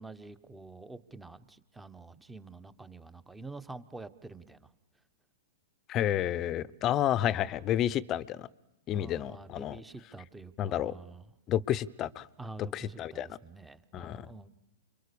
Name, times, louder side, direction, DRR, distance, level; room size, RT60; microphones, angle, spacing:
voice 1, 0.0-4.7 8.9-11.2 12.4-14.5, right 3 dB, 10° right, 12 dB, 1.2 m, -47 dB
voice 2, 5.9-8.5 8.9-9.8 10.6-11.0 11.5-12.3 12.6-13.4 13.9-14.3, left 11 dB, 30° left, 20 dB, 0.9 m, -30 dB
29.0 x 23.5 x 7.0 m, 0.89 s
hypercardioid pair, 120°, 0 cm